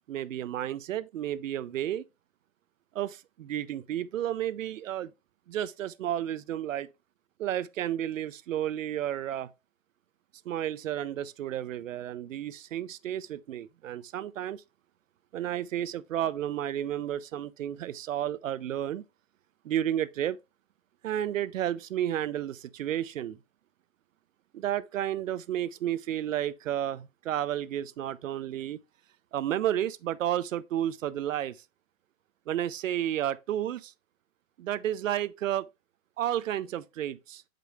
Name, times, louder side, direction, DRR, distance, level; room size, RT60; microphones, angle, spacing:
voice 1, 0.1-2.0 2.9-5.1 5.5-6.9 7.4-9.5 10.5-14.6 15.3-19.0 19.6-20.4 21.0-23.4 24.5-28.8 29.3-31.6 32.5-33.9 34.6-35.7 36.2-37.4, right 11 dB, 70° right, 0.5 m, -32 dB
6.5 x 5.2 x 3.1 m
hypercardioid pair, 175°, 41 cm